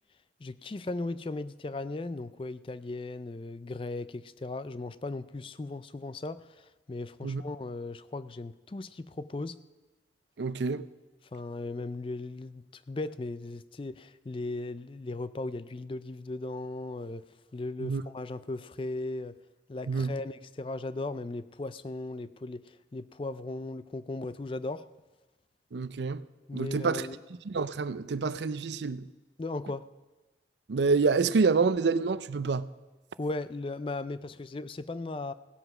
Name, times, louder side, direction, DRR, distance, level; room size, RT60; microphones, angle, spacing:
voice 1, 0.4-9.6 11.3-17.3 17.5-19.4 19.7-24.9 26.5-27.2 29.4-29.9 33.2-35.3, left 2 dB, 30° left, 0.4 m, -37 dB
voice 2, 10.4-10.8 17.8-18.0 19.9-20.1 25.7-26.2 26.5-27.1 27.5-29.0 30.7-32.7, right 4 dB, 80° right, 0.5 m, -27 dB
16.5 x 8.0 x 6.0 m
head